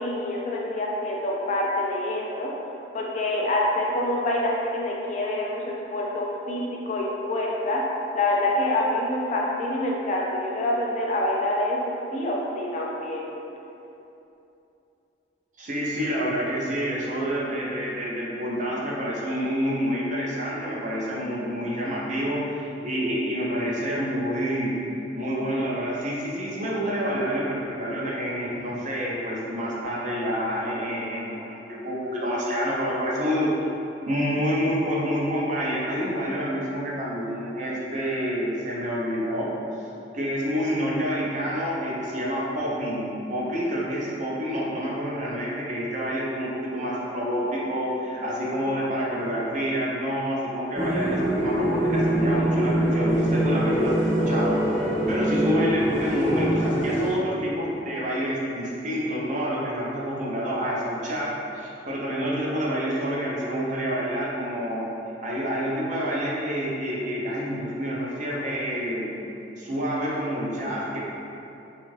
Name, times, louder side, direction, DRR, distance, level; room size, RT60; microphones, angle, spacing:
voice 1, 0.0-2.5 2.9-7.8 8.1-13.3, left 1 dB, 40° left, -2 dB, 0.3 m, -26 dB
voice 2, 15.6-24.8 25.2-33.5 34.1-39.5 39.8-39.9 40.1-64.8 65.2-69.1 69.6-71.0, equal, 45° right, -5 dB, 0.5 m, -28 dB
sound 1, 50.7-57.1, right 1 dB, 5° left, 1.2 m, -23 dB
2.6 x 2.4 x 3.1 m, 2.9 s
head